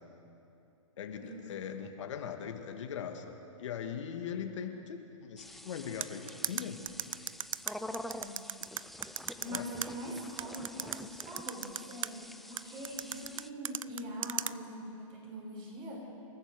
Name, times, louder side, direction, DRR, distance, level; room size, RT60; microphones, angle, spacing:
voice 1, 1.0-6.8 9.5-9.7, left 7 dB, 65° left, 5 dB, 2.0 m, -40 dB
sound 1, 5.4-13.5, left 1 dB, ahead, 0.6 m, -47 dB
sound 2, 6.0-9.9 10.4-12.1 12.6-14.5, right 8 dB, 85° right, 0.6 m, -35 dB
voice 2, 9.4-16.1, equal, 30° right, -1 dB, 6.3 m, -43 dB
28.5 x 14.5 x 7.0 m, 2.8 s
hypercardioid pair, 130°, 17 cm